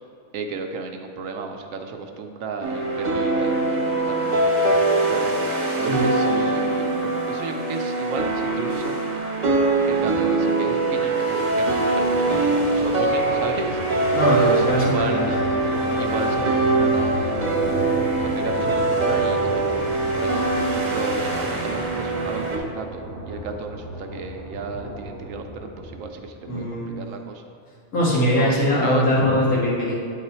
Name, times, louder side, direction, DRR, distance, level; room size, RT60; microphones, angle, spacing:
voice 1, 0.3-4.4 5.0-5.3 5.8-9.1 9.9-13.8 14.5-15.4 16.0-17.5 18.2-20.5 20.9-27.4 28.4-28.5 28.8-29.0, right 4 dB, 75° right, 5 dB, 0.9 m, -33 dB
sound 1, 2.6-22.6, right 2 dB, 35° right, 0.9 m, -22 dB
sound 2, 10.8-26.5, right 1 dB, 20° left, 1.3 m, -34 dB
voice 2, 14.1-15.3 26.5-26.9 27.9-29.9, left 1 dB, 80° left, -7 dB, 2.2 m, -21 dB
8.5 x 3.9 x 4.3 m, 2.4 s
omnidirectional pair, 1.5 m